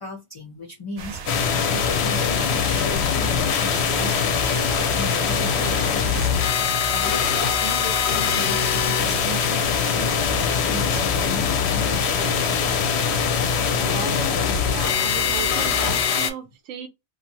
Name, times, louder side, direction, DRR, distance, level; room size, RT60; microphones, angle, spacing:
voice 1, 0.0-12.2, equal, 40° left, 0.4 m, -36 dB
sound 1, 1.0-6.3, right 5 dB, 60° right, 0.8 m, -36 dB
sound 2, 1.3-16.3, left 7 dB, 65° left, 0.8 m, -22 dB
sound 3, 3.9-16.0, right 3 dB, 25° right, 0.7 m, -35 dB
voice 2, 13.7-16.9, right 8 dB, 90° right, 0.9 m, -35 dB
2.6 x 2.3 x 2.8 m
omnidirectional pair, 1.3 m